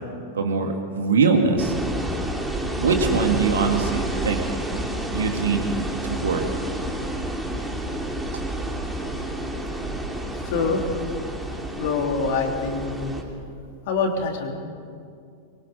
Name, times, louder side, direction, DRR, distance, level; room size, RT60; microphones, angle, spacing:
voice 1, 0.3-1.7 2.8-4.4 5.1-5.7 6.0-6.5, right 5 dB, 65° right, 4 dB, 2.5 m, -22 dB
sound 1, 1.6-13.2, right 1 dB, 5° right, 3.0 m, -29 dB
voice 2, 10.5-10.8 11.8-13.1 13.9-14.5, left 4 dB, 50° left, 3 dB, 3.1 m, -25 dB
23.5 x 23.0 x 5.5 m, 2.3 s
figure-of-eight pair, 90°, 0 cm